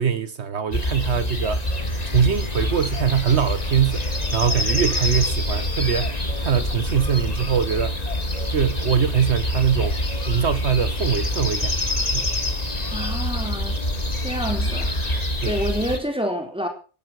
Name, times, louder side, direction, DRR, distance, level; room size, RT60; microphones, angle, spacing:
voice 1, 0.0-1.6 2.1-7.9 8.5-10.0 10.3-11.7 12.1-12.3 15.4-15.6, right 7 dB, 75° right, 1.4 m, -22 dB
sound 1, 0.7-16.0, left 1 dB, 35° left, 2.2 m, -25 dB
sound 2, 1.8-15.2, left 3 dB, 85° left, 2.7 m, -41 dB
voice 2, 12.9-13.8 14.2-14.9 15.4-16.7, equal, 5° right, 4.2 m, -27 dB
17.5 x 11.5 x 6.1 m
omnidirectional pair, 1.1 m